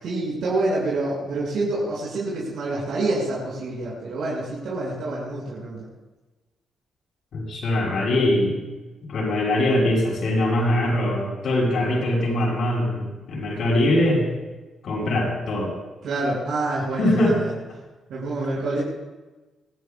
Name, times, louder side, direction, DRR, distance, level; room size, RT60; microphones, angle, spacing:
voice 1, 0.0-5.9 16.0-17.6 18.1-18.8, right 2 dB, 65° right, -6 dB, 6.7 m, -27 dB
voice 2, 7.3-8.6 9.1-14.3 14.8-15.7 17.0-17.4, left 1 dB, 55° left, -8 dB, 6.7 m, -22 dB
24.5 x 20.5 x 2.5 m, 1.2 s
cardioid pair, 165°, 0 cm